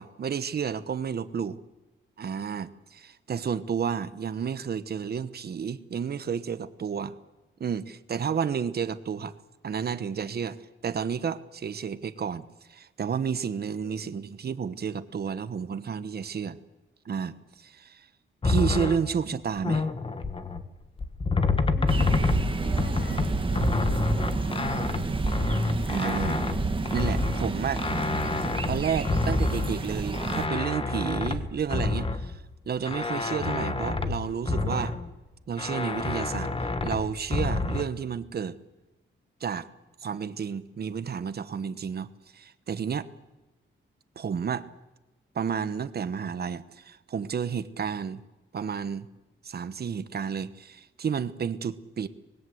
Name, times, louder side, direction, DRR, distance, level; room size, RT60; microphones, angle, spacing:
voice 1, 0.0-1.6 2.2-7.1 7.6-9.3 9.6-10.6 10.8-16.6 17.0-18.1 18.4-19.9 25.9-26.5 26.9-27.8 28.7-35.0 35.5-38.6 39.4-39.7 40.0-43.1 44.1-44.7 45.3-48.2 48.5-49.1 49.4-52.1, right 7 dB, 50° right, 13 dB, 1.1 m, -31 dB
voice 2, 13.8-14.1 21.3-24.9, left 1 dB, 60° left, 5 dB, 6.0 m, -45 dB
sound 1, 18.4-20.7 21.0-32.5 32.9-35.1 35.6-37.8, left 3 dB, 25° left, 1.5 m, -28 dB
sound 2, 21.9-30.5, right 3 dB, 25° right, 1.5 m, -30 dB
25.5 x 20.5 x 8.0 m, 1.1 s
wide cardioid pair, 145°, 20 cm